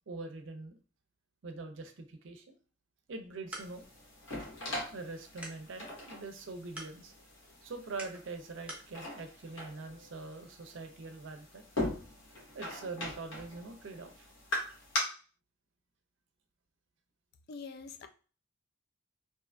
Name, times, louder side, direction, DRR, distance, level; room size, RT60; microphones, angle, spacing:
voice 1, 0.1-0.8 1.4-2.6 3.1-3.8 4.9-7.1 7.6-11.6 12.5-14.3, right 3 dB, 65° right, 6 dB, 0.5 m, -43 dB
sound 1, 3.1-8.9, right 1 dB, 5° right, 0.6 m, -51 dB
sound 2, 3.6-15.0, left 1 dB, 80° left, 0.9 m, -41 dB
voice 2, 17.5-18.1, left 4 dB, 55° left, 8 dB, 0.3 m, -44 dB
2.7 x 2.4 x 2.2 m, 0.37 s
head